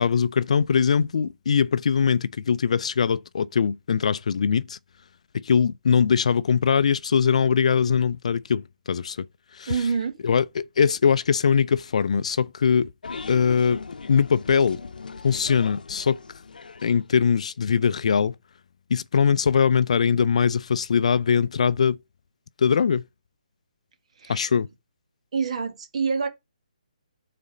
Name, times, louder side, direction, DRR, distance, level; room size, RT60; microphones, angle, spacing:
voice 1, 0.0-4.8 5.3-9.3 9.5-9.7 10.2-12.9 13.3-13.8 14.1-14.8 15.2-16.2 16.8-18.3 18.9-22.0 22.6-23.0 24.3-24.7, left 6 dB, 55° left, 0.4 m, -21 dB
voice 2, 9.7-10.2 24.2-24.4 25.3-26.3, right 5 dB, 50° right, 1.9 m, -26 dB
sound 1, 13.0-17.5, left 4 dB, 80° left, 0.7 m, -39 dB
9.5 x 4.2 x 4.9 m
hypercardioid pair, 165°, 4 cm